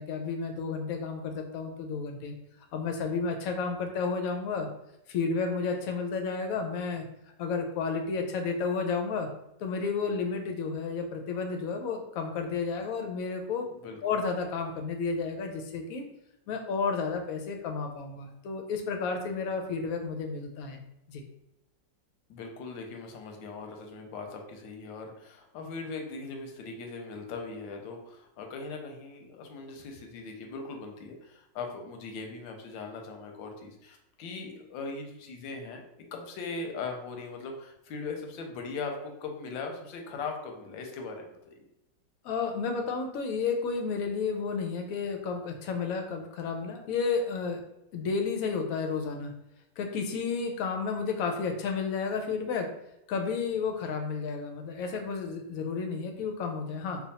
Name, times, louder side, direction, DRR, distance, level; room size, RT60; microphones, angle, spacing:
voice 1, 0.0-2.3 2.7-4.7 5.1-7.0 7.4-9.3 9.6-13.6 14.0-16.0 16.5-20.8 21.1-21.2 42.2-47.6 47.9-49.3 49.8-52.7 53.1-57.0, left 5 dB, 70° left, 3 dB, 0.8 m, -31 dB
voice 2, 22.3-35.8 36.1-41.7, left 4 dB, 90° left, 3 dB, 1.4 m, -40 dB
3.4 x 2.2 x 4.0 m, 0.86 s
omnidirectional pair, 2.0 m